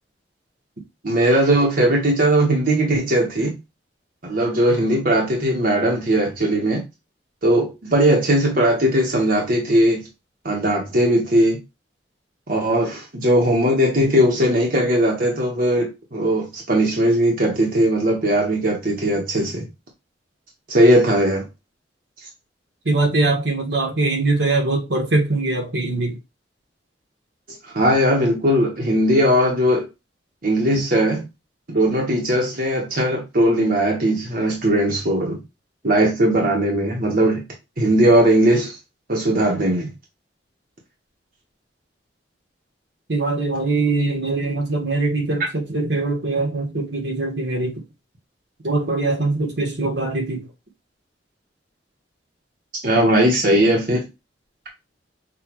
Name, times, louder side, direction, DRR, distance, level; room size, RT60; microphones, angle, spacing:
voice 1, 1.0-3.6 4.2-6.8 7.4-10.1 10.4-11.6 12.5-19.7 20.7-21.4 27.6-29.9 30.4-31.3 31.7-35.4 35.8-37.4 37.8-38.8 39.1-39.9 52.8-54.0, right 1 dB, 55° right, 1.3 m, -19 dB
voice 2, 22.8-26.2 43.1-47.8 48.6-50.5, right 2 dB, 75° right, 1.6 m, -22 dB
6.2 x 2.7 x 3.0 m
head